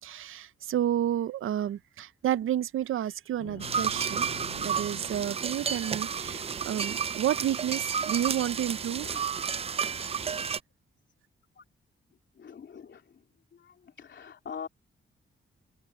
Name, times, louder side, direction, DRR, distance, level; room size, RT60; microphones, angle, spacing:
voice 1, 0.0-4.3 4.5-9.2, right 11 dB, 85° right, 0.6 m, -31 dB
sound 1, 3.4-7.8, left 11 dB, 85° left, 1.3 m, -49 dB
sound 2, 3.6-10.6, right 6 dB, 30° right, 0.3 m, -31 dB
voice 2, 6.1-6.6 8.9-9.2 11.6-11.7 12.4-13.2 13.5-14.7, left 7 dB, 60° left, 3.1 m, -45 dB
cardioid pair, 110°, 21 cm